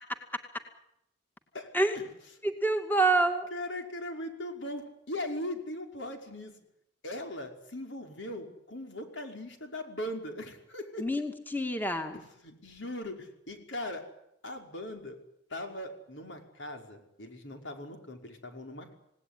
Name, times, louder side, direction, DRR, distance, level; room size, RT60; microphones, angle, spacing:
voice 1, 1.5-2.1 3.5-6.5 7.0-11.2 12.4-14.0 14.4-15.1 15.5-18.9, left 1 dB, 80° left, 4 dB, 5.3 m, -39 dB
voice 2, 2.4-3.5 11.0-12.2, right 2 dB, 10° left, 5 dB, 2.2 m, -27 dB
28.0 x 18.5 x 10.0 m, 0.80 s
head